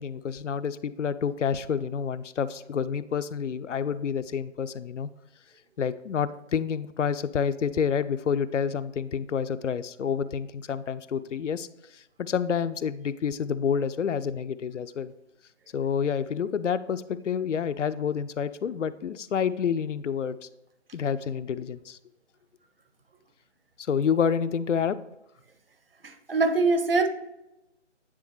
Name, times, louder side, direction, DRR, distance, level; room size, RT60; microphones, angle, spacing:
voice 1, 0.0-5.1 5.8-11.7 11.9-15.1 15.7-20.5 20.9-22.0 23.8-25.0, left 7 dB, 75° left, 14 dB, 0.5 m, -28 dB
voice 2, 26.0-27.1, right 3 dB, 50° right, 7 dB, 0.9 m, -23 dB
9.6 x 3.4 x 3.1 m, 0.91 s
figure-of-eight pair, 155°, 37 cm